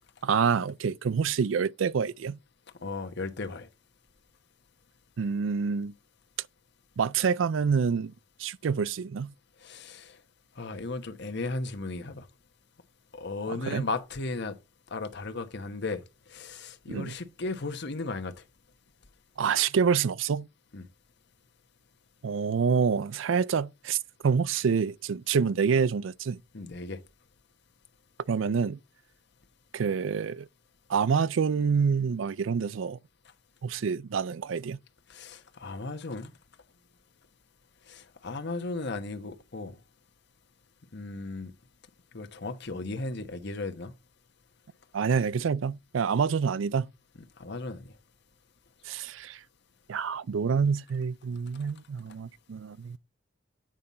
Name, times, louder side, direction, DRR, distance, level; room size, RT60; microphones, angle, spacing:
voice 1, 0.2-2.4 5.2-5.9 7.0-8.1 8.4-9.3 13.5-13.9 16.9-17.1 19.4-20.5 22.2-24.0 24.2-26.4 28.3-28.8 29.7-30.5 30.9-33.0 33.6-34.8 44.9-46.9 48.8-49.4 49.9-53.0, right 6 dB, 75° right, 0.4 m, -27 dB
voice 2, 2.8-3.7 9.6-10.2 10.6-12.3 13.1-14.5 14.9-16.0 16.3-18.3 20.7-20.9 26.5-27.0 35.1-36.3 37.9-39.8 40.9-41.5 42.1-43.9 47.4-47.9, left 3 dB, 60° left, 1.1 m, -35 dB
9.0 x 5.4 x 4.3 m
head